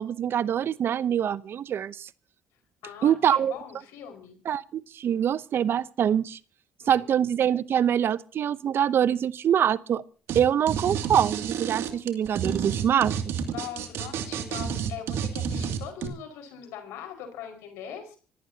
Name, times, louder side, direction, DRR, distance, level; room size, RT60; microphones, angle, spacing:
voice 1, 0.0-2.1 3.0-3.5 4.5-6.4 6.9-10.0 10.3-13.1, right 9 dB, 55° right, 0.7 m, -24 dB
voice 2, 2.8-4.4 6.8-7.4 13.5-18.2, left 8 dB, 80° left, 5.1 m, -41 dB
sound 1, 10.3-10.4 10.7-16.1, right 8 dB, 70° right, 2.5 m, -30 dB
26.0 x 16.5 x 2.8 m
supercardioid pair, 65°, 5 cm